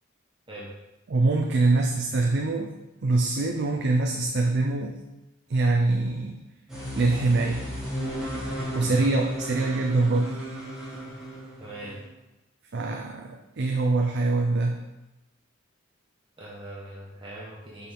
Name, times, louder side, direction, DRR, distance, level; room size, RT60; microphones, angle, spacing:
voice 1, 1.1-2.7 3.0-5.0 5.5-6.4 6.9-7.6 8.7-10.4 12.7-14.8, right 3 dB, 55° right, 2 dB, 0.5 m, -24 dB
sound 1, 6.7-12.1, equal, 5° right, 2.0 m, -34 dB
voice 2, 8.8-9.1 11.6-12.0 16.4-17.9, right 1 dB, 25° right, -7 dB, 1.1 m, -40 dB
6.7 x 5.4 x 3.7 m, 1.0 s
head